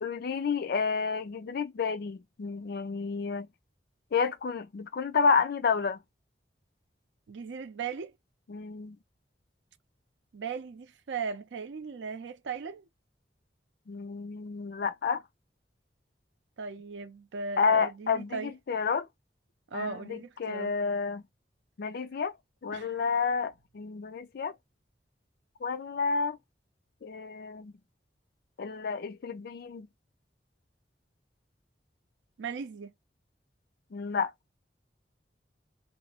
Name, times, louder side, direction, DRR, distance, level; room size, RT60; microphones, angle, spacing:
voice 1, 0.0-3.5 4.1-6.0 8.5-9.0 13.9-15.2 17.6-19.1 19.7-21.2 21.8-22.3 22.6-24.5 25.6-26.4 27.0-27.8 28.6-29.9 33.9-34.3, left 5 dB, 60° left, 0.4 m, -30 dB
voice 2, 7.3-8.1 10.3-12.8 16.6-18.5 19.7-20.7 22.7-22.9 32.4-32.9, right 5 dB, 90° right, 0.5 m, -38 dB
2.6 x 2.0 x 2.7 m
head